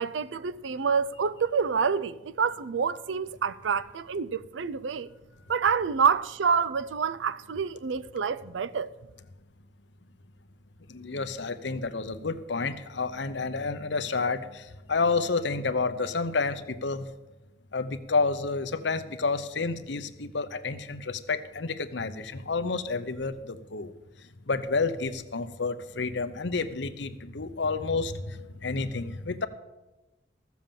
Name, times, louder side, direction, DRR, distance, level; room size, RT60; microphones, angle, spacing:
voice 1, 0.0-5.1 5.5-8.9, right 6 dB, 90° right, 0.5 m, -27 dB
voice 2, 10.9-14.6 14.9-17.1 17.7-23.9 24.5-29.5, left 4 dB, 75° left, 0.8 m, -30 dB
14.5 x 7.2 x 7.4 m
head